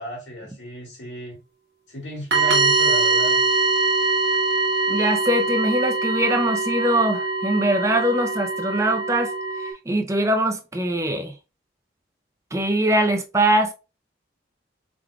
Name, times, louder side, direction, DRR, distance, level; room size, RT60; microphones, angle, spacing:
voice 1, 0.0-1.4 1.9-3.4, equal, 75° left, 1.8 m, -34 dB
sound 1, 2.3-9.7, right 3 dB, 55° right, 1.2 m, -22 dB
voice 2, 4.9-9.3 9.9-11.3 12.5-13.7, right 1 dB, 15° right, 0.5 m, -22 dB
4.9 x 3.7 x 2.3 m
head